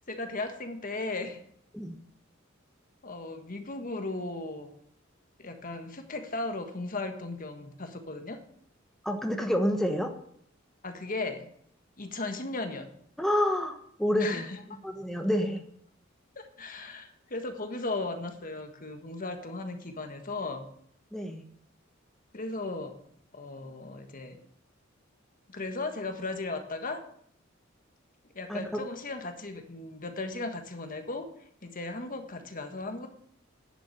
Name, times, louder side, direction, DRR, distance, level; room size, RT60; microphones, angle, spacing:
voice 1, 0.1-1.4 3.0-4.7 5.4-8.4 10.8-11.5 12.0-12.9 14.2-14.8 16.3-20.6 22.3-23.0 23.3-24.4 25.5-27.0 28.3-31.3 31.6-33.1, left 2 dB, 45° left, 6 dB, 1.5 m, -36 dB
voice 2, 9.0-10.1 13.2-14.4 14.8-15.6 21.1-21.5 28.5-28.6, equal, ahead, 3 dB, 1.1 m, -28 dB
10.5 x 7.1 x 9.1 m, 0.67 s
head